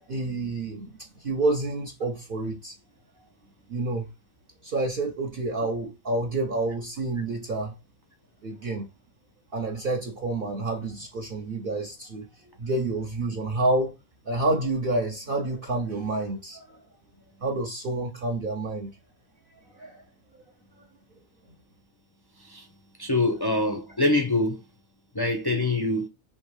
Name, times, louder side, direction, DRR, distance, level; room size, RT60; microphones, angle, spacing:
voice 1, 0.1-2.8 3.7-4.1 4.6-7.7 8.4-8.9 9.5-12.3 12.6-13.9 14.3-16.8 17.4-19.0 19.7-20.0, right 2 dB, 55° right, 0.7 m, -28 dB
voice 2, 23.0-24.6 25.1-26.1, left 2 dB, 35° left, 0.4 m, -24 dB
3.5 x 2.8 x 4.7 m
omnidirectional pair, 1.4 m